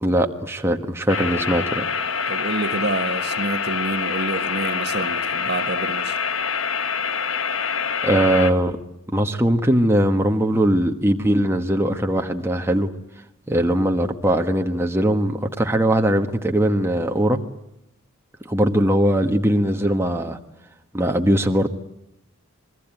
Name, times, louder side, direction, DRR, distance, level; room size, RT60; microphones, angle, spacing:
voice 1, 0.0-1.8 8.0-8.8 9.1-12.9 13.5-17.4 18.4-20.4 20.9-21.7, right 1 dB, 10° right, 1.4 m, -20 dB
sound 1, 1.1-8.5, left 6 dB, 65° left, 1.4 m, -25 dB
voice 2, 2.3-6.2, right 2 dB, 50° right, 1.4 m, -28 dB
28.0 x 22.0 x 9.0 m
head